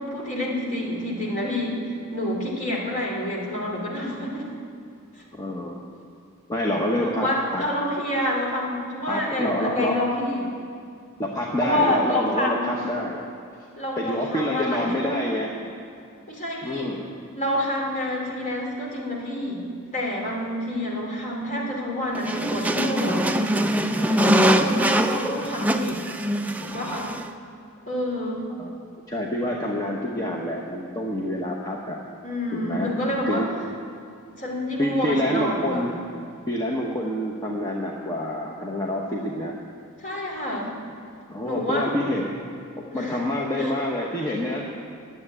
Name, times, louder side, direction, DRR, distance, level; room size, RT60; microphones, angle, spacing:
voice 1, 0.0-1.8 2.1-4.5 7.0-10.5 11.6-12.7 13.8-15.1 15.5-15.6 16.3-16.9 17.3-19.6 19.9-23.6 24.0-26.0 26.6-27.2 27.9-28.4 32.2-33.4 34.4-36.0 40.0-40.7 41.4-42.0 42.9-43.2 43.6-43.7, left 1 dB, 35° left, -3 dB, 2.8 m, -28 dB
voice 2, 5.4-5.8 6.5-7.6 9.1-10.0 11.2-13.2 14.0-15.5 16.6-17.1 28.6-28.7 29.1-32.0 32.5-32.9 33.3-33.5 34.8-36.0 36.5-39.5 40.1-40.2 41.3-42.3 42.8-44.7, left 1 dB, 15° left, -2 dB, 0.9 m, -27 dB
sound 1, 22.1-27.3, equal, 5° right, 0.4 m, -23 dB
10.5 x 7.8 x 9.8 m, 2.4 s
head